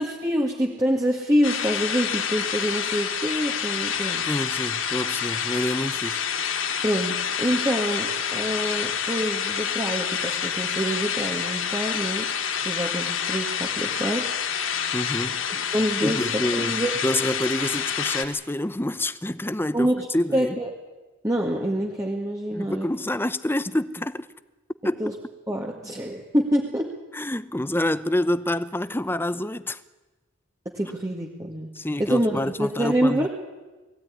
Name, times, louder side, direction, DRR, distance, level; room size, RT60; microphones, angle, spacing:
voice 1, 0.0-4.3 6.8-12.3 12.6-14.3 15.5-16.9 19.7-20.1 20.3-20.7 21.2-22.9 25.0-25.1 25.5-26.9 30.7-31.7 32.0-33.3, equal, 15° right, 1.9 m, -26 dB
sound 1, 1.4-18.2, left 7 dB, 80° left, 2.2 m, -28 dB
voice 2, 4.3-6.2 14.9-15.4 16.0-20.6 22.5-24.3 24.8-25.1 27.1-29.8 31.7-33.3, left 1 dB, 10° left, 0.7 m, -27 dB
21.5 x 16.0 x 9.8 m
head